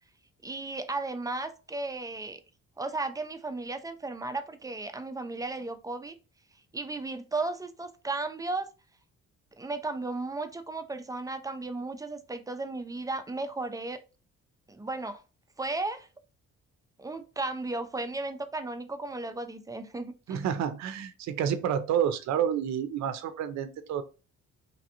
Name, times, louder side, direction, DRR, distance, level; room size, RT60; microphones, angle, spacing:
voice 1, 0.4-2.4 2.8-6.2 6.7-8.7 9.6-14.0 14.7-15.2 15.6-16.1 17.0-20.4, right 3 dB, 10° right, 0.3 m, -35 dB
voice 2, 20.3-24.0, right 9 dB, 65° right, 0.5 m, -29 dB
3.3 x 2.5 x 2.7 m
cardioid pair, 90°, 30 cm